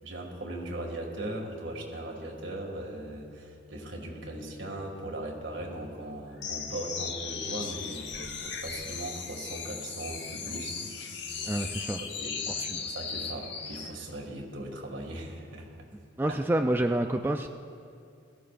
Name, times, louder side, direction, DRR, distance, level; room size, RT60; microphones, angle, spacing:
voice 1, 0.0-11.4 12.0-15.7, right 1 dB, 75° right, 0 dB, 2.1 m, -39 dB
sound 1, 6.4-14.0, left 6 dB, 65° left, 1.0 m, -37 dB
voice 2, 11.5-12.0 12.6-12.8 16.2-17.5, right 1 dB, 10° right, 4 dB, 0.3 m, -28 dB
20.5 x 14.5 x 2.5 m, 2.3 s
head